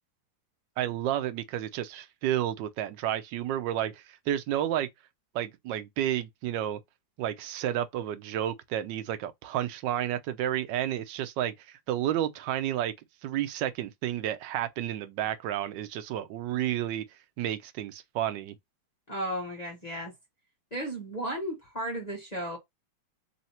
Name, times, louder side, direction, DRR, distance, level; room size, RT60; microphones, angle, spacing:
voice 1, 0.8-4.9 5.3-6.8 7.2-12.9 13.2-17.0 17.4-18.5, right 11 dB, 75° right, 1.2 m, -31 dB
voice 2, 19.1-20.1 20.7-22.6, right 1 dB, 30° left, 0.8 m, -34 dB
3.2 x 2.8 x 4.2 m
omnidirectional pair, 2.1 m